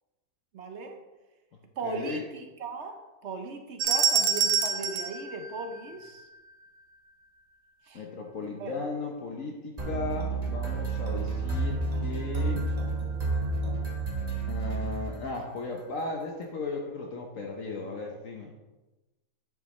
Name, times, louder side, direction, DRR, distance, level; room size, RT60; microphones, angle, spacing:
voice 1, 0.5-1.0 1.8-6.3 7.9-8.0 8.6-8.7, right 3 dB, 55° right, 5 dB, 0.8 m, -37 dB
voice 2, 1.8-2.2 7.9-12.7 14.5-18.5, left 3 dB, 55° left, 1 dB, 1.1 m, -36 dB
sound 1, 3.8-6.2, right 7 dB, 85° right, 1.3 m, -27 dB
sound 2, 9.8-15.5, right 3 dB, 25° right, 1.2 m, -30 dB
8.7 x 7.3 x 3.1 m, 1.1 s
omnidirectional pair, 1.8 m